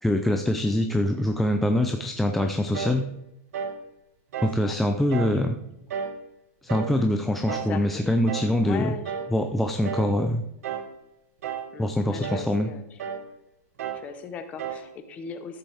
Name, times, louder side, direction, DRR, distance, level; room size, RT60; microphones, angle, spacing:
voice 1, 0.0-3.1 4.4-5.6 6.6-8.9 9.3-10.4 11.8-12.7, left 1 dB, ahead, 5 dB, 0.3 m, -24 dB
sound 1, 2.7-3.0 3.5-3.8 4.3-4.6 5.1-5.4 5.9-6.2 6.7-7.0 7.5-7.8 8.3-8.5 9.0-9.4 9.8-10.2 10.6-10.9 11.4-11.8 12.2-12.5 13.0-13.3 13.8-14.1 14.6-14.9, right 7 dB, 80° right, 1.6 m, -33 dB
voice 2, 5.2-5.9 7.0-7.1 7.5-8.1 8.6-9.2 11.7-13.0 13.9-15.6, left 5 dB, 20° left, 9 dB, 0.8 m, -39 dB
13.5 x 7.5 x 3.4 m, 0.84 s
supercardioid pair, 180°, 8 cm